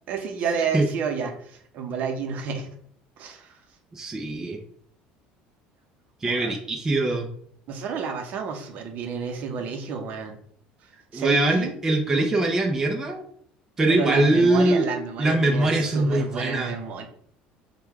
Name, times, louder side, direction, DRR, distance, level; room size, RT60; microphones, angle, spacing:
voice 1, 0.1-2.7 3.2-3.6 6.2-6.5 7.7-10.4 11.1-11.7 12.1-12.3 13.9-17.1, right 6 dB, 50° right, 4 dB, 0.7 m, -30 dB
voice 2, 3.9-4.6 6.2-7.3 11.1-13.2 13.8-14.9 15.2-16.7, right 2 dB, 15° right, 0 dB, 0.5 m, -22 dB
4.8 x 2.2 x 3.4 m, 0.63 s
cardioid pair, 150°, 3 cm